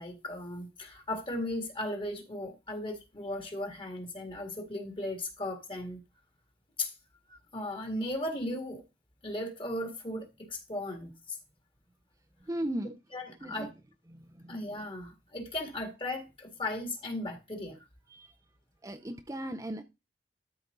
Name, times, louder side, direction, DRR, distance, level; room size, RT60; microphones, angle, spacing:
voice 1, 0.0-6.0 6.8-6.9 7.3-8.8 9.2-11.4 13.1-13.7 14.5-17.8, left 1 dB, 30° left, 2.0 m, -36 dB
voice 2, 12.5-12.9 13.4-13.7 14.1-14.6 18.1-18.3 18.8-19.8, right 1 dB, 20° right, 0.6 m, -37 dB
13.0 x 4.9 x 3.9 m
head